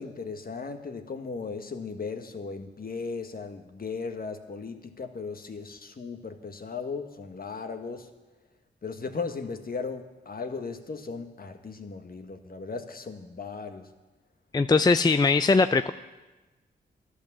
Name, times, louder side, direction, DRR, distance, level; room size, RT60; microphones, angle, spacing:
voice 1, 0.0-8.1 8.8-13.9, left 4 dB, 50° left, 7 dB, 1.4 m, -37 dB
voice 2, 14.5-15.9, left 4 dB, 20° left, 10 dB, 0.4 m, -21 dB
11.5 x 11.5 x 7.2 m, 1.2 s
cardioid pair, 60°, 19 cm